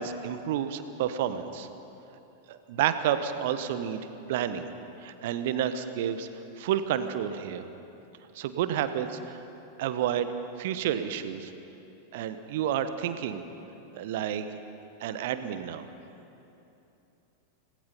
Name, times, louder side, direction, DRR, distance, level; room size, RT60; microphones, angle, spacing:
voice 1, 0.0-1.7 2.5-4.7 5.0-6.3 6.6-7.6 8.3-9.4 9.8-10.3 10.6-11.5 12.1-13.4 13.9-14.4 15.0-15.9, right 9 dB, 50° right, 10 dB, 1.2 m, -30 dB
26.0 x 19.0 x 5.7 m, 2.9 s
figure-of-eight pair, 90°, 0 cm